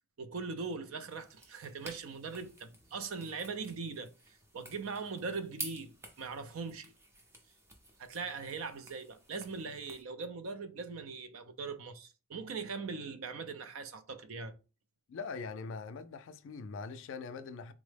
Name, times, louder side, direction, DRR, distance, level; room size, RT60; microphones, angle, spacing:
voice 1, 0.2-6.9 8.0-14.5, right 4 dB, 70° right, 0.4 m, -41 dB
sound 1, 1.0-10.0, right 1 dB, 10° right, 0.5 m, -51 dB
voice 2, 15.1-17.7, left 4 dB, 60° left, 0.3 m, -42 dB
3.6 x 2.0 x 3.3 m
head